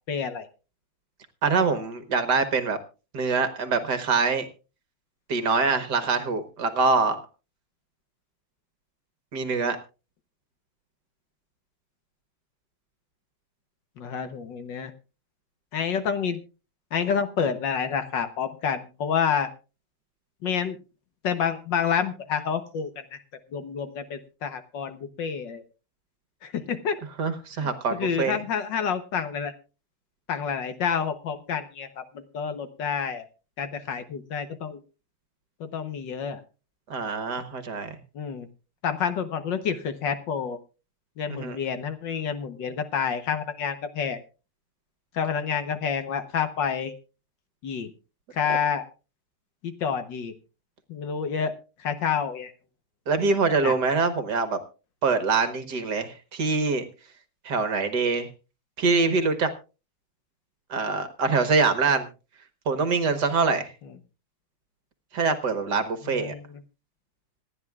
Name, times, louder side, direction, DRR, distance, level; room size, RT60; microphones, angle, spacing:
voice 1, 0.1-0.5 14.0-14.9 15.7-16.4 16.9-19.5 20.4-20.8 21.2-22.9 23.5-25.6 26.4-27.0 27.6-27.7 28.0-29.5 30.3-32.0 32.3-33.3 33.6-34.8 35.6-36.4 38.1-38.5 38.8-40.6 41.2-44.2 45.1-46.9 47.6-47.9 48.3-48.9 49.6-50.3 50.9-51.5 51.8-52.5 53.6-53.7 66.1-66.4, left 7 dB, 60° left, 9 dB, 1.6 m, -28 dB
voice 2, 1.4-2.8 3.1-4.5 5.3-7.2 9.3-9.8 27.2-28.4 36.9-38.0 41.3-41.6 48.5-48.6 53.1-54.6 55.0-56.8 57.5-58.3 58.8-59.5 60.7-62.1 62.7-63.7 65.1-66.3, right 4 dB, 55° right, 10 dB, 1.7 m, -24 dB
26.5 x 9.9 x 2.4 m, 0.33 s
omnidirectional pair, 2.3 m